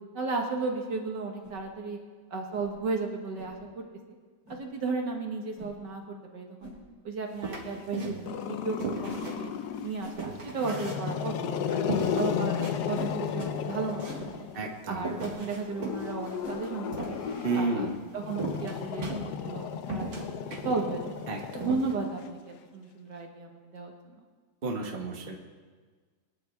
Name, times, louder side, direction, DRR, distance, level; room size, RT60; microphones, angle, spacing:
voice 1, 0.1-2.0 2.3-3.8 4.5-6.0 6.3-6.7 7.0-9.1 9.4-9.5 9.8-11.8 12.2-12.6 12.9-14.5 14.9-17.2 17.6-17.9 18.1-20.3 20.6-21.0 21.5-23.9, right 4 dB, 60° right, 2 dB, 2.0 m, -34 dB
sound 1, 1.4-1.6 2.5-2.7 3.4-3.5 4.4-4.6 5.5-5.7 6.6-6.8 8.0-8.2 9.1-9.3 10.0-10.2 11.0-11.2 12.0-12.2 12.9-13.1 14.0-14.2 15.2-15.3 16.4-16.6, left 1 dB, 85° left, 4.6 m, -43 dB
sound 2, 7.4-8.4 8.8-11.4 11.9-12.8 13.1-13.2 13.4-14.3 15.0-17.6 18.4-19.6 19.9-20.8 21.2-21.3 21.6-21.9, right 2 dB, 80° right, 3.2 m, -36 dB
Growling, 8.3-10.0 10.5-14.7 15.7-22.2, left 8 dB, 65° left, 1.1 m, -34 dB
voice 2, 14.5-15.1 17.4-17.9 21.3-21.6 24.6-25.3, right 3 dB, 30° right, 0 dB, 1.5 m, -31 dB
24.5 x 10.5 x 3.5 m, 1.5 s
omnidirectional pair, 2.2 m